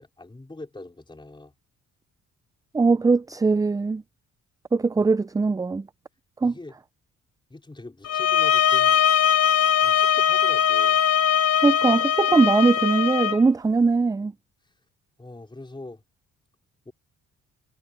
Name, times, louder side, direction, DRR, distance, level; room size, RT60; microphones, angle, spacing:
voice 1, 0.0-1.5 6.4-6.7 7.5-9.0 9.8-11.0 15.2-16.0 16.8-16.9, left 2 dB, 15° left, 4.3 m, -42 dB
voice 2, 2.7-4.0 4.7-5.9 6.4-6.5 11.6-14.3, right 4 dB, 10° right, 0.4 m, -21 dB
sound 1, 8.0-13.4, left 8 dB, 55° left, 1.0 m, -21 dB
cardioid pair, 90°, 30 cm